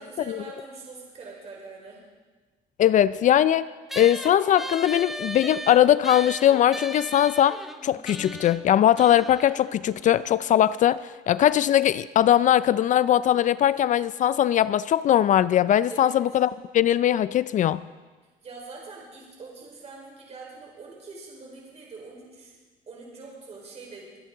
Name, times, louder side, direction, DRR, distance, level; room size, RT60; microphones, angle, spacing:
voice 1, 0.0-2.0 15.9-16.1 18.4-22.5 22.9-24.1, right 3 dB, 40° right, -2 dB, 4.4 m, -43 dB
voice 2, 2.8-3.7 4.0-17.8, left 11 dB, 50° left, 17 dB, 0.4 m, -20 dB
sound 1, 3.9-10.7, equal, ahead, 0.7 m, -38 dB
23.5 x 10.5 x 3.8 m, 1.3 s
cardioid pair, 110°, 17 cm